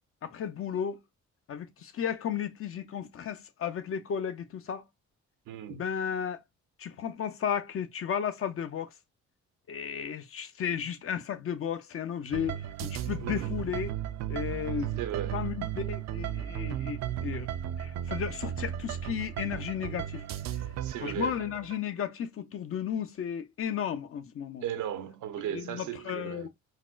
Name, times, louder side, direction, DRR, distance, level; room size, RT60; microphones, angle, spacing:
voice 1, 0.2-1.0 1.5-4.8 5.7-6.4 6.8-8.9 9.7-13.9 14.3-15.0 15.3-17.5 17.8-20.2 21.0-24.6 25.5-26.5, left 8 dB, 45° left, 0.6 m, -34 dB
voice 2, 5.5-5.8 13.2-13.6 15.0-15.4 20.8-21.4 24.6-26.5, right 10 dB, 80° right, 0.8 m, -36 dB
sound 1, 12.3-21.8, right 11 dB, 60° right, 0.4 m, -35 dB
4.1 x 2.2 x 2.4 m
cardioid pair, 90°, 30 cm